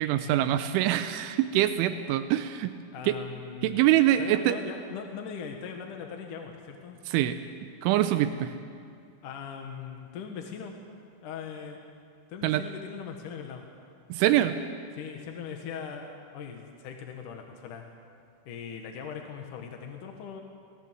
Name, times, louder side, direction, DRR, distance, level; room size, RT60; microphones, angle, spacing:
voice 1, 0.0-2.7 3.0-3.2 3.6-4.6 7.1-7.4 7.8-8.5 12.4-12.6 14.1-14.6, right 13 dB, 85° right, 10 dB, 3.2 m, -24 dB
voice 2, 2.9-3.8 4.2-7.0 9.2-10.7 11.2-11.8 12.3-13.7 14.9-17.8 18.5-20.4, left 6 dB, 60° left, 3 dB, 2.3 m, -40 dB
26.0 x 18.5 x 7.6 m, 2.3 s
omnidirectional pair, 5.4 m